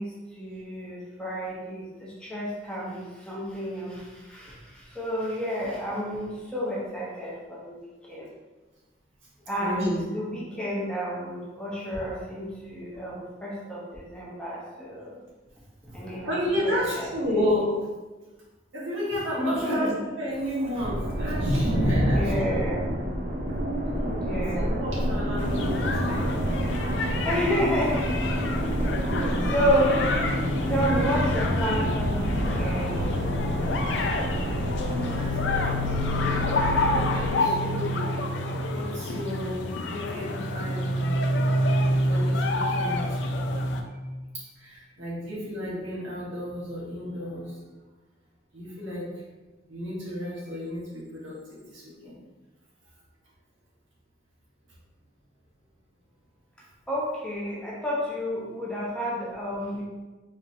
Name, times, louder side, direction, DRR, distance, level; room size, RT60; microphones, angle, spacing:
voice 1, 0.0-7.8 8.0-8.3 9.5-15.2 15.9-16.3 16.6-17.5 19.4-20.0 22.1-23.1 24.2-24.7 27.2-28.1 28.8-28.9 29.5-30.1 30.7-33.2 56.9-59.8, equal, 5° left, -6 dB, 0.7 m, -30 dB
voice 2, 9.6-10.0 15.9-16.0 16.3-17.8 18.7-19.9 20.2-22.7 23.8-27.3 34.0-38.0 38.3-41.2 42.1-43.2 44.3-47.5 48.5-49.2 49.7-52.1, equal, 85° right, -6 dB, 1.3 m, -31 dB
sound 1, 20.8-37.3, right 1 dB, 45° right, 0.5 m, -29 dB
sound 2, 25.4-43.8, left 1 dB, 65° left, 0.4 m, -28 dB
4.1 x 2.9 x 2.6 m, 1.2 s
head